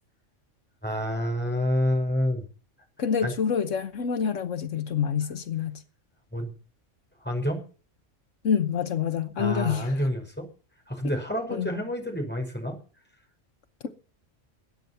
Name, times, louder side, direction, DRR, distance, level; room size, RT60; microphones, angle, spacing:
voice 1, 0.8-2.4 3.2-3.3 6.3-6.5 7.2-7.6 9.4-10.5 10.9-12.8, equal, 10° left, 5.4 m, -28 dB
voice 2, 3.0-5.8 8.4-10.0 11.5-11.7, left 7 dB, 80° left, 1.4 m, -27 dB
20.5 x 9.3 x 5.7 m
omnidirectional pair, 1.3 m